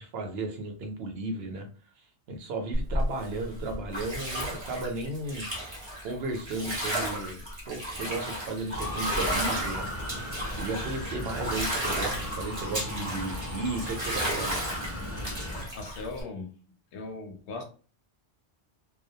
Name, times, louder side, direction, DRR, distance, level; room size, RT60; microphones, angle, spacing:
voice 1, 0.0-1.7 2.0-5.5 6.0-10.1 10.5-14.6, right 2 dB, 70° right, 0.8 m, -35 dB
Bathtub (filling or washing), 2.7-16.2, right 1 dB, 30° right, 0.8 m, -33 dB
Motor vehicle (road) / Siren, 8.7-15.6, equal, 20° left, 0.4 m, -36 dB
voice 2, 15.7-16.6 16.9-17.6, left 3 dB, 85° left, 0.9 m, -38 dB
2.2 x 2.1 x 2.6 m
omnidirectional pair, 1.1 m